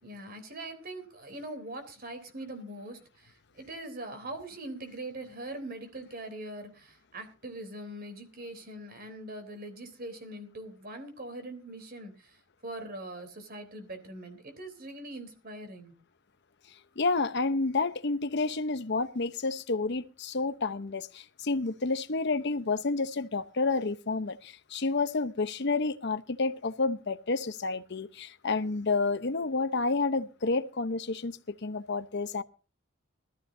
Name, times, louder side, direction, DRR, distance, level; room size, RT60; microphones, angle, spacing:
voice 1, 0.0-15.9, right 1 dB, 45° right, 3.5 m, -42 dB
voice 2, 17.0-32.4, left 3 dB, 55° left, 0.8 m, -30 dB
20.0 x 14.0 x 2.7 m
head